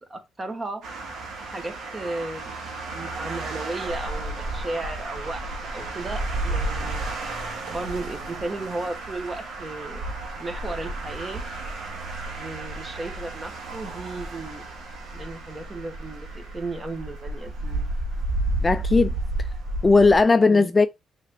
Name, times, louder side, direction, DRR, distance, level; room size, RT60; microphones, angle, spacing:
voice 1, 0.1-0.8 1.4-2.6 2.9-7.0 7.7-10.0 10.4-11.4 12.3-14.6 15.1-17.9 20.4-20.7, right 2 dB, 25° right, 1.3 m, -35 dB
sound 1, 0.8-20.2, right 2 dB, 80° right, 1.7 m, -32 dB
voice 2, 18.6-19.1 19.4-19.5 19.8-20.9, left 3 dB, 25° left, 0.3 m, -17 dB
6.5 x 3.3 x 2.3 m
cardioid pair, 90°, 0 cm